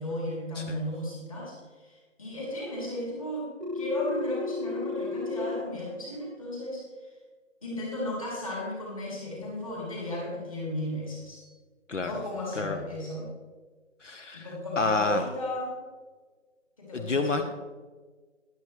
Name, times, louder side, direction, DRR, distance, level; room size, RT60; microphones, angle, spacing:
voice 1, 0.0-3.5 3.7-7.1 7.6-11.5 12.0-13.3 14.3-15.8 16.8-17.5, left 1 dB, 25° left, -4 dB, 3.2 m, -34 dB
Telephone, 3.6-5.6, left 4 dB, 35° right, 0.7 m, -33 dB
voice 2, 14.0-14.5 14.8-15.2 16.9-17.5, left 3 dB, 70° left, 6 dB, 0.9 m, -28 dB
12.0 x 11.0 x 3.2 m, 1.4 s
figure-of-eight pair, 175°, 38 cm